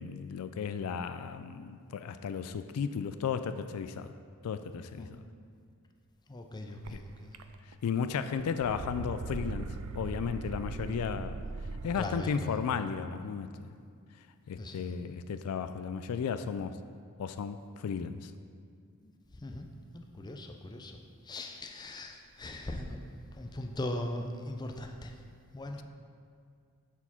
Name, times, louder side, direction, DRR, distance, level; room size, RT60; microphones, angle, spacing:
voice 1, 0.0-4.1 4.4-5.1 6.9-7.0 7.8-11.3 11.8-13.7 14.5-16.7 17.2-18.3, left 6 dB, 80° left, 10 dB, 0.3 m, -34 dB
voice 2, 6.3-7.3 8.1-8.2 12.0-12.5 14.6-14.9 19.0-19.1 19.4-19.7 19.9-20.9 21.3-23.0 23.4-25.1 25.5-25.8, left 1 dB, 20° left, 4 dB, 0.4 m, -39 dB
sound 1, 6.8-6.9 7.3-7.9 8.2-12.2, right 3 dB, 70° right, 0.4 m, -39 dB
7.1 x 4.3 x 5.6 m, 2.2 s
head